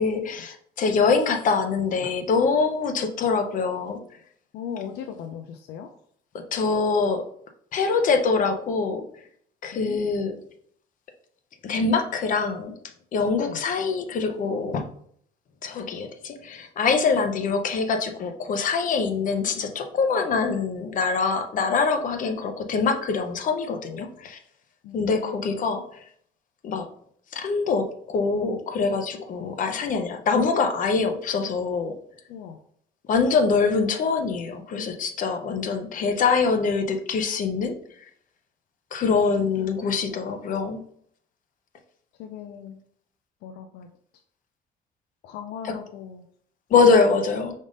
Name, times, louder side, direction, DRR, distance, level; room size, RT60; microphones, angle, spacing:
voice 1, 0.0-4.0 6.5-7.2 7.7-9.0 9.6-10.3 11.6-12.7 13.1-14.8 15.6-24.4 24.9-25.8 26.6-26.8 27.3-31.9 33.1-37.7 38.9-40.8 45.6-45.7 46.7-47.5, left 4 dB, 50° left, 6 dB, 0.7 m, -24 dB
voice 2, 4.5-5.9 9.7-10.1 13.5-13.6 24.8-25.5 32.3-32.6 39.4-39.7 40.4-40.5 42.2-42.8 43.4-43.9 45.2-46.2, left 8 dB, 80° left, 7 dB, 0.4 m, -38 dB
5.0 x 3.6 x 2.5 m, 0.63 s
cardioid pair, 110°, 17 cm